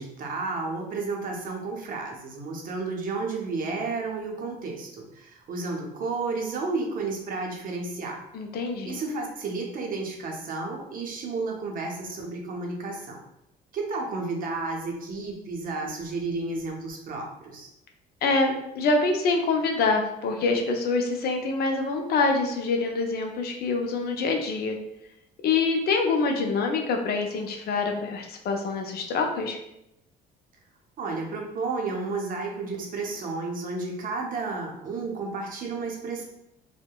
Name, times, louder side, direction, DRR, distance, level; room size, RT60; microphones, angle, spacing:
voice 1, 0.0-8.2 8.9-13.2 13.7-17.7 31.0-36.2, right 3 dB, 50° right, 0 dB, 0.6 m, -32 dB
voice 2, 8.3-8.9 18.2-24.8 25.4-29.6, left 3 dB, 55° left, 3 dB, 0.4 m, -25 dB
2.6 x 2.1 x 2.2 m, 0.83 s
supercardioid pair, 90°, 19 cm